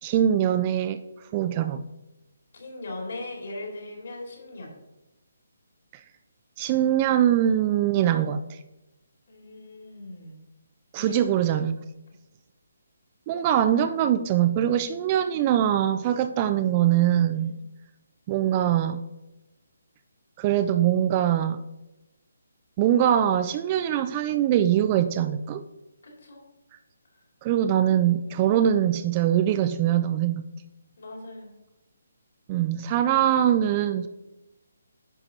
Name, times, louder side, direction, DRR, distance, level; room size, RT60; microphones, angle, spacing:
voice 1, 0.0-1.0 1.3-1.8 6.6-8.4 10.9-11.8 13.3-17.5 18.3-19.0 20.4-21.6 22.8-25.6 27.4-30.4 32.5-34.1, right 10 dB, 25° right, 10 dB, 0.3 m, -22 dB
voice 2, 2.5-4.8 9.3-10.4 11.0-11.3 17.3-17.6 26.0-26.4 27.1-27.2 28.2-28.5 31.0-31.5, left 2 dB, 55° left, 0 dB, 2.4 m, -39 dB
10.0 x 5.8 x 2.7 m, 0.96 s
figure-of-eight pair, 140°, 0 cm